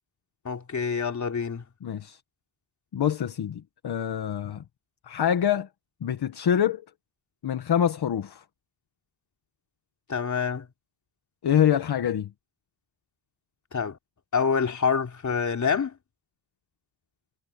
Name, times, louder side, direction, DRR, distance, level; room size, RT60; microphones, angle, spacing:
voice 1, 0.5-1.6 10.1-10.7 13.7-14.0 14.3-16.0, left 6 dB, 35° left, 3.5 m, -26 dB
voice 2, 1.8-2.2 2.9-4.6 5.1-5.7 6.0-6.8 7.4-8.4 11.4-12.3, left 9 dB, 55° left, 1.6 m, -25 dB
wide cardioid pair, 145°, 47 cm